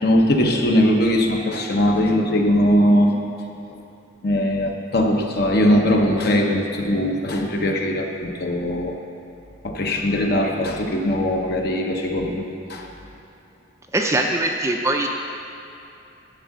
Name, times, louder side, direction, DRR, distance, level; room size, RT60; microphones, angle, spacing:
voice 1, 0.0-3.2 4.2-9.0 9.6-12.4 12.7-12.9, equal, 50° left, 2 dB, 0.9 m, -20 dB
voice 2, 13.9-15.1, right 2 dB, 15° right, 2 dB, 0.4 m, -21 dB
11.0 x 3.8 x 7.4 m, 2.7 s
head